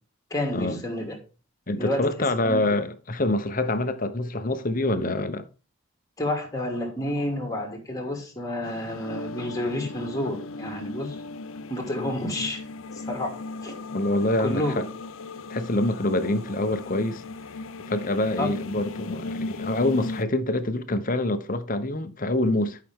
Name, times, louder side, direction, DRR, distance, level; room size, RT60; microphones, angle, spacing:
voice 1, 0.3-1.2 1.8-2.1 2.4-2.6 6.2-11.2 11.7-12.6 12.9-13.3 13.6-13.8 14.4-14.8 18.4-18.5, left 1 dB, 15° left, 2.6 m, -29 dB
voice 2, 1.7-5.5 13.9-14.8 15.5-17.2 17.9-22.8, left 2 dB, 40° left, 0.9 m, -26 dB
sound 1, 8.6-20.2, left 3 dB, 70° left, 0.6 m, -37 dB
12.0 x 5.9 x 3.7 m
head